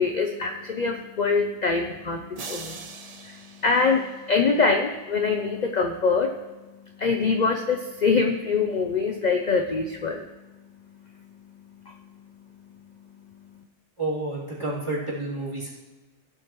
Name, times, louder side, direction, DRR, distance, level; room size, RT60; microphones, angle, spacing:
voice 1, 0.0-10.3 11.2-11.3 11.8-12.3 13.3-13.4, left 4 dB, 40° left, 4 dB, 0.7 m, -25 dB
sound 1, 2.4-4.7, right 5 dB, 40° right, 0.6 m, -42 dB
voice 2, 14.0-15.7, right 2 dB, 20° right, -7 dB, 3.3 m, -30 dB
16.5 x 8.2 x 3.1 m, 1.2 s
omnidirectional pair, 1.3 m